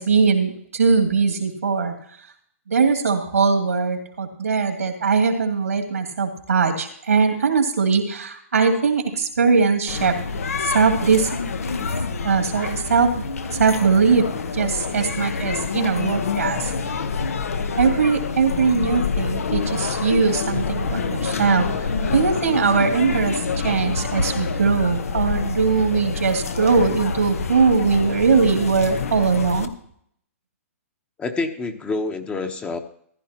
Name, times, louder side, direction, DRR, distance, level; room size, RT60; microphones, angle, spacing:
voice 1, 0.0-1.9 2.7-10.2 10.6-11.4 12.2-13.1 13.5-14.3 14.5-16.9 17.8-29.7, right 5 dB, 90° right, 4 dB, 2.6 m, -20 dB
sound 1, 9.9-29.7, left 5 dB, 80° left, 1.1 m, -27 dB
voice 2, 31.2-32.8, left 3 dB, 15° left, 6 dB, 1.0 m, -27 dB
15.0 x 11.0 x 3.0 m, 0.65 s
hypercardioid pair, 130°, 8 cm